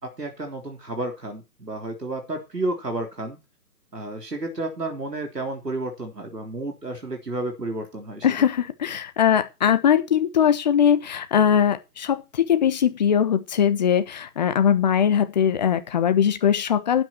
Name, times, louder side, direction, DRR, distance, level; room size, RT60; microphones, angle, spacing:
voice 1, 0.0-3.4 3.9-8.3, right 2 dB, 85° right, 3.7 m, -31 dB
voice 2, 8.2-17.0, left 8 dB, 25° left, 1.2 m, -21 dB
12.0 x 9.1 x 4.6 m
figure-of-eight pair, 145°, 47 cm